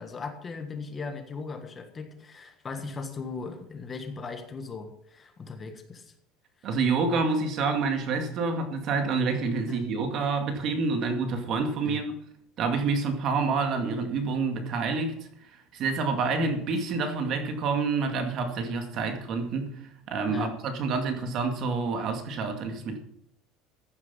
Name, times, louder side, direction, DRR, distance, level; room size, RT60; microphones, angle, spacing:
voice 1, 0.0-6.1 9.7-9.9 11.8-12.0 20.3-20.6, left 4 dB, 20° left, 6 dB, 1.5 m, -38 dB
voice 2, 6.6-12.1 12.6-15.1 15.7-19.7 20.1-23.0, right 4 dB, 40° right, 6 dB, 2.2 m, -28 dB
15.0 x 9.7 x 5.6 m, 0.72 s
cardioid pair, 165°, 0 cm